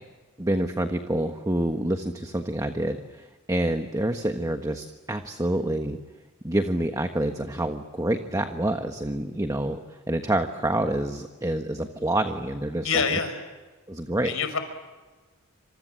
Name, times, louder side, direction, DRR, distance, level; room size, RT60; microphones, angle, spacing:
voice 1, 0.4-6.0 6.4-9.8 10.1-13.0 13.9-14.3, right 1 dB, 15° right, 6 dB, 1.4 m, -27 dB
voice 2, 12.8-13.4 14.2-14.6, left 5 dB, 65° left, 9 dB, 5.3 m, -25 dB
28.5 x 27.0 x 7.7 m, 1.3 s
head